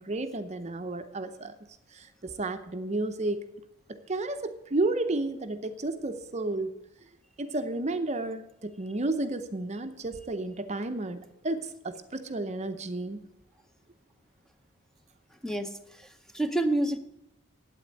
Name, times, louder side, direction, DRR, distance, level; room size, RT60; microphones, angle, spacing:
voice 1, 0.0-1.5 1.9-3.5 3.9-6.7 7.4-13.2, right 2 dB, 35° right, 9 dB, 0.7 m, -32 dB
voice 2, 15.4-17.0, right 1 dB, ahead, 7 dB, 0.8 m, -29 dB
8.6 x 8.6 x 9.3 m, 0.84 s
head